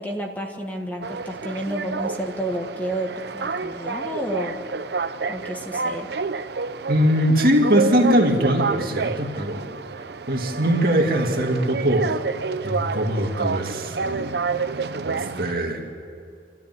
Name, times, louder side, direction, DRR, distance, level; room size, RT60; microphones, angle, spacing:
voice 1, 0.0-4.6 5.3-6.1, right 1 dB, 10° left, 2 dB, 1.5 m, -30 dB
sound 1, 1.0-15.5, right 4 dB, 70° right, 0.7 m, -29 dB
voice 2, 6.9-9.7 10.3-12.1 12.6-14.3 15.0-15.8, equal, 55° right, 2 dB, 2.4 m, -21 dB
28.5 x 13.0 x 9.5 m, 2.4 s
head